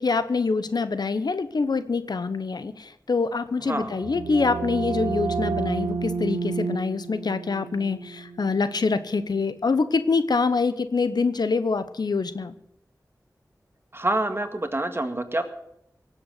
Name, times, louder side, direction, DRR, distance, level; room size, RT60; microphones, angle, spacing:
voice 1, 0.0-12.5, left 4 dB, 80° left, 12 dB, 0.9 m, -25 dB
sound 1, 3.7-9.3, right 4 dB, 90° right, 0.8 m, -31 dB
voice 2, 13.9-15.4, right 1 dB, 35° right, 7 dB, 1.9 m, -26 dB
18.5 x 7.8 x 7.8 m, 0.76 s
cardioid pair, 40°, 7 cm